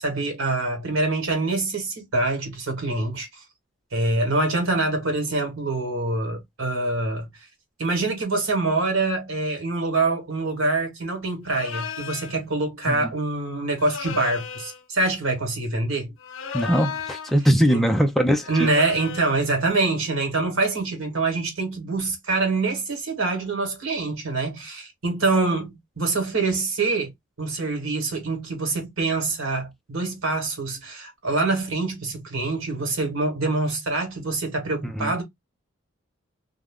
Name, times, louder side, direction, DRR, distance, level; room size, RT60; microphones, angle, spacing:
voice 1, 0.0-3.4 3.9-7.5 7.8-16.1 17.7-17.8 18.5-27.1 27.4-35.2, right 3 dB, 80° right, 1.3 m, -25 dB
sound 1, 11.5-12.4 13.8-14.8 16.2-17.4 18.4-19.4, left 6 dB, 70° left, 0.5 m, -35 dB
voice 2, 16.5-18.7 34.8-35.1, equal, ahead, 0.4 m, -21 dB
2.4 x 2.3 x 3.4 m
head